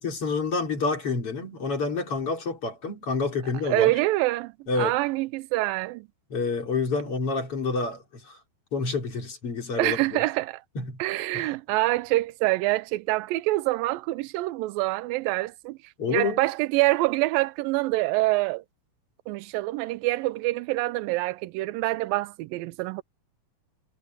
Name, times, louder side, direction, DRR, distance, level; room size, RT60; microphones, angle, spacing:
voice 1, 0.0-3.9 4.7-5.0 6.3-8.4 8.7-10.2 10.8-11.0 11.3-11.5 16.0-16.4, left 4 dB, 40° left, 4.2 m, -28 dB
voice 2, 3.7-4.5 4.8-6.1 9.8-10.6 11.0-15.8 16.1-18.6 19.3-23.0, right 19 dB, 90° right, 2.3 m, -26 dB
omnidirectional pair, 4.0 m